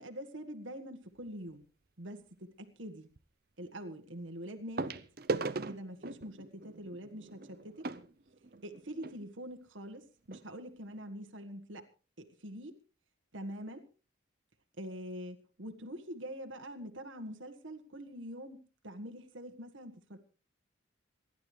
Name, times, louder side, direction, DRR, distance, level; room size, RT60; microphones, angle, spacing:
voice 1, 0.0-1.6 2.0-3.1 3.6-5.0 5.5-7.9 8.6-11.9 12.2-12.7 13.3-13.8 14.8-20.2, equal, 80° right, 5 dB, 1.7 m, -44 dB
sound 1, 1.2-1.5 3.2-3.3 4.8-9.2 10.0-10.1 10.3-10.4 11.0-11.1, right 3 dB, 50° right, 0.7 m, -39 dB
27.0 x 11.0 x 3.3 m, 0.34 s
head